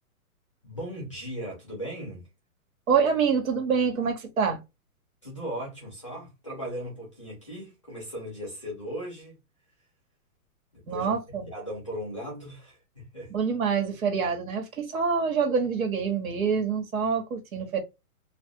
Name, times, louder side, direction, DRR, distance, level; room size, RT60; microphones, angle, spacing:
voice 1, 0.6-2.3 5.2-9.4 10.7-13.3, equal, 20° left, 0.5 m, -38 dB
voice 2, 2.9-4.6 10.9-11.5 13.3-17.8, right 6 dB, 65° right, 1.3 m, -26 dB
2.2 x 2.2 x 2.7 m
hypercardioid pair, 180°, 44 cm